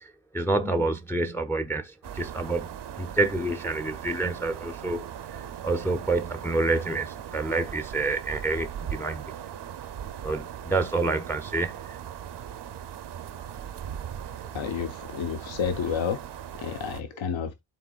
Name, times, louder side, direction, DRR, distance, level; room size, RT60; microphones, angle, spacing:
voice 1, 0.0-9.3 10.2-12.0, right 2 dB, 5° left, 0.4 m, -28 dB
sound 1, 2.0-17.0, right 9 dB, 60° right, 0.6 m, -39 dB
voice 2, 14.5-16.2 16.6-17.5, left 7 dB, 75° left, 0.8 m, -30 dB
12.0 x 4.0 x 2.3 m
wide cardioid pair, 135°, 47 cm